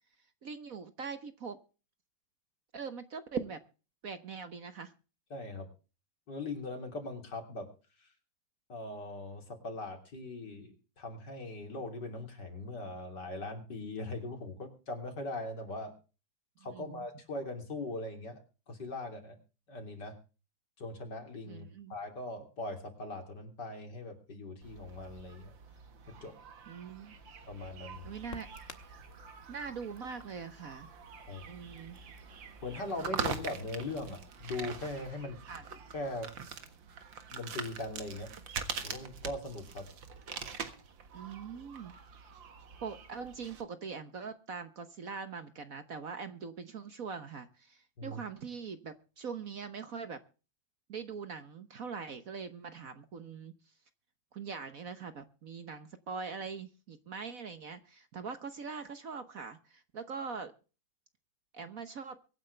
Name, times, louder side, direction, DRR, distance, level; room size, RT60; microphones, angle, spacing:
voice 1, 0.4-1.6 2.7-3.6 4.0-4.9 16.7-17.0 21.5-21.9 26.7-27.1 28.0-28.5 29.5-30.9 31.5-32.0 35.5-35.6 41.1-41.9 42.8-50.2 50.9-53.5 54.3-60.5 61.5-62.2, right 5 dB, 50° right, 10 dB, 1.4 m, -42 dB
voice 2, 5.3-5.7 6.3-7.7 8.0-8.1 8.7-15.9 16.6-18.4 18.7-19.4 19.7-20.2 20.8-25.5 26.1-26.3 27.5-28.1 31.3-31.5 32.6-35.4 35.7-36.3 37.3-38.3 38.8-39.9 48.0-48.2, left 2 dB, 60° left, 5 dB, 3.8 m, -40 dB
sound 1, 24.6-43.6, right 6 dB, 75° right, 2.4 m, -44 dB
Crackle, 26.9-35.1, left 5 dB, 40° left, 1.8 m, -57 dB
23.5 x 9.7 x 3.4 m, 0.35 s
omnidirectional pair, 2.1 m